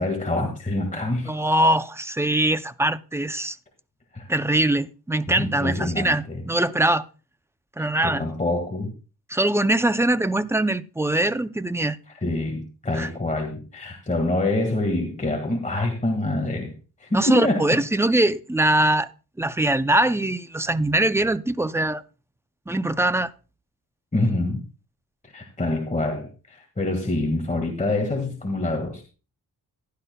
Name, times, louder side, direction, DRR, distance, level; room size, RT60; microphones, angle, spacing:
voice 1, 0.0-1.3 4.1-4.3 5.4-6.4 7.8-8.9 12.2-16.7 17.0-17.6 24.1-24.6 25.3-29.0, left 2 dB, 20° left, 1.8 m, -26 dB
voice 2, 1.3-3.6 4.3-7.0 7.8-8.2 9.3-12.0 12.9-13.1 17.1-19.1 19.4-22.0 22.7-23.3, right 1 dB, 5° right, 0.4 m, -22 dB
15.0 x 11.5 x 2.2 m
wide cardioid pair, 105°, 40 cm